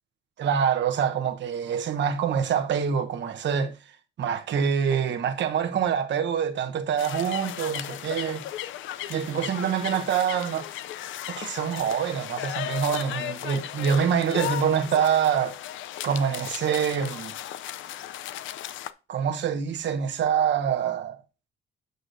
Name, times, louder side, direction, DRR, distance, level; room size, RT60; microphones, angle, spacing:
voice 1, 0.4-3.7 4.2-8.4 9.1-10.7 11.3-15.6 16.0-17.3 19.1-21.2, right 7 dB, 65° right, 1.0 m, -25 dB
sound 1, 7.0-18.9, left 12 dB, 75° left, 0.5 m, -35 dB
7.9 x 6.5 x 2.6 m
cardioid pair, 90°, 20 cm